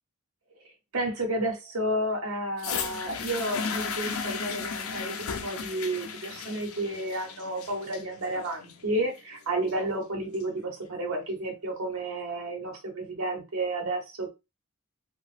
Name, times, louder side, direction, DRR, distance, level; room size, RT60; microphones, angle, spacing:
voice 1, 0.9-14.3, right 1 dB, 80° right, 0.9 m, -31 dB
sound 1, 2.6-10.6 11.4-11.5, left 6 dB, 85° left, 0.5 m, -35 dB
2.8 x 2.2 x 3.1 m
head